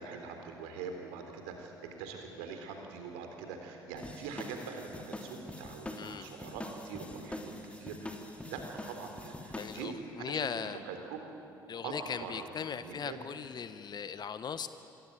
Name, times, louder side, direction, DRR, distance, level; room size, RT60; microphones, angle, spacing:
voice 1, 0.0-1.7 2.0-11.3 11.8-13.2, right 5 dB, 70° right, 4 dB, 3.7 m, -43 dB
sound 1, 4.0-9.8, left 1 dB, 10° left, 3.1 m, -44 dB
voice 2, 6.0-6.3 9.6-10.8 11.7-14.7, left 7 dB, 40° left, 12 dB, 1.4 m, -38 dB
26.5 x 23.0 x 9.0 m, 2.8 s
figure-of-eight pair, 50°, 11 cm